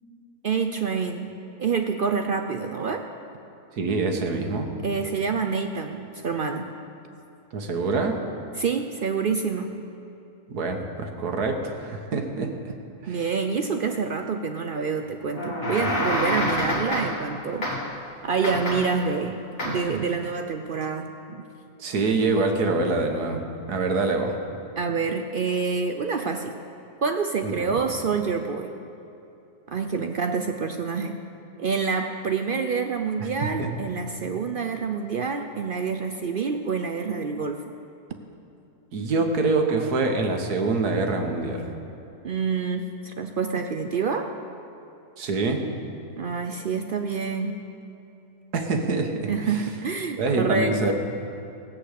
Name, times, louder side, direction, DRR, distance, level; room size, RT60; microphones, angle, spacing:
voice 1, 0.4-1.3 1.6-3.0 4.8-6.7 8.5-9.7 13.1-17.7 18.2-19.4 19.6-21.4 24.8-26.5 27.0-28.7 29.7-31.2 31.6-37.6 42.2-44.3 46.2-47.6 49.3-50.9, right 5 dB, 65° right, 5 dB, 0.5 m, -27 dB
voice 2, 3.8-4.7 7.5-8.2 10.5-12.5 13.0-13.2 21.8-23.4 23.7-24.4 27.4-27.8 33.4-33.7 38.9-41.7 45.2-45.6 48.5-49.3 50.2-50.9, right 3 dB, 80° right, 4 dB, 1.8 m, -25 dB
sound 1, 15.3-17.3 17.6-18.0 18.4-19.1 19.6-20.0, left 1 dB, 45° left, 1.9 m, -27 dB
17.0 x 8.5 x 6.6 m, 2.9 s
omnidirectional pair, 1.6 m